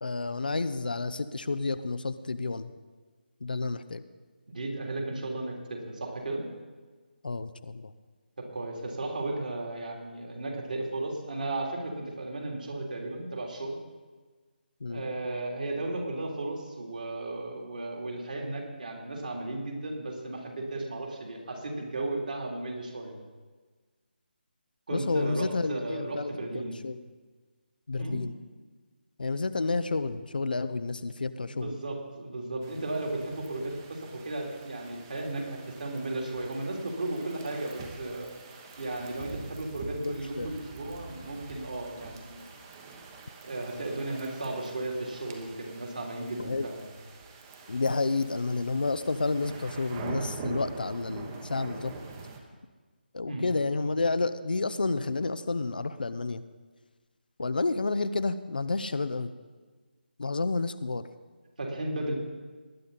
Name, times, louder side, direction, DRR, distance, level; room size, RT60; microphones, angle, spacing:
voice 1, 0.0-2.7 3.4-4.0 7.2-7.9 14.8-15.0 24.9-27.0 27.9-28.3 29.2-31.7 39.9-40.5 46.4-46.7 47.7-51.9 53.1-56.4 57.4-59.3 60.2-61.1, left 3 dB, 55° left, 12 dB, 0.7 m, -30 dB
voice 2, 4.5-6.4 8.4-13.8 14.9-23.2 24.9-26.8 27.9-28.2 31.4-38.3 38.8-42.5 43.4-46.8 53.3-53.5 61.6-62.1, right 2 dB, 55° right, 0 dB, 3.4 m, -35 dB
sound 1, 32.6-52.4, right 3 dB, 20° right, 1.2 m, -44 dB
19.0 x 10.5 x 4.1 m, 1.4 s
figure-of-eight pair, 150°, 6 cm